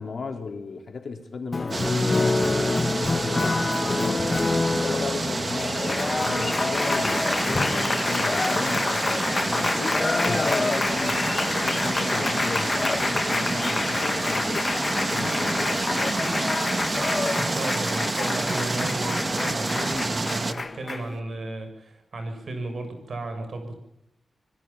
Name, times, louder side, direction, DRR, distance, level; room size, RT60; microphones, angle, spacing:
voice 1, 0.0-4.2 4.7-16.0, left 4 dB, 60° left, 4 dB, 4.0 m, -35 dB
Applause, 1.5-21.2, left 3 dB, 35° left, 1.5 m, -27 dB
sound 1, 1.7-20.5, right 3 dB, 35° right, 1.9 m, -28 dB
voice 2, 17.3-23.7, right 2 dB, 60° right, 7 dB, 7.4 m, -34 dB
26.0 x 23.0 x 5.8 m, 0.83 s
wide cardioid pair, 95°, 0 cm